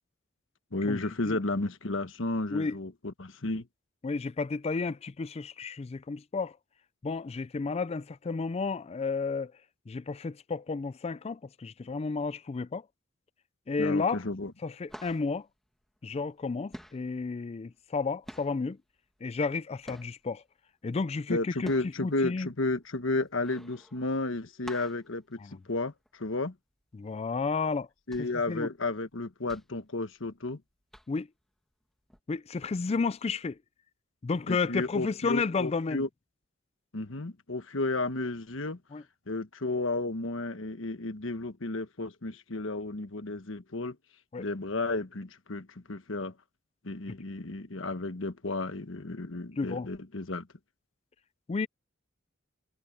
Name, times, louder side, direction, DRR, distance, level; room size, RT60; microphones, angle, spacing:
voice 1, 0.7-3.7 13.8-14.5 21.3-26.5 28.1-30.6 34.5-36.1 36.9-38.8 39.3-44.0 44.4-46.3 46.8-50.5, left 2 dB, 70° left, 1.3 m, -33 dB
voice 2, 4.0-6.5 7.0-9.5 9.9-12.8 13.7-14.2 14.6-15.5 16.0-18.8 19.2-20.4 20.8-21.7 22.0-22.5 25.4-25.6 26.9-27.9 28.5-28.7 31.1-31.3 32.3-33.6 34.2-36.0 38.9-39.0 44.3-44.4 49.6-49.9 51.5-51.7, left 4 dB, 30° left, 0.4 m, -32 dB
sound 1, 13.9-14.2 14.5-16.4 16.7-20.4 20.9-26.2 26.5-26.6 27.0-27.2 27.8-30.6 30.9-31.4 32.1-32.2, equal, ahead, 1.5 m, -49 dB
head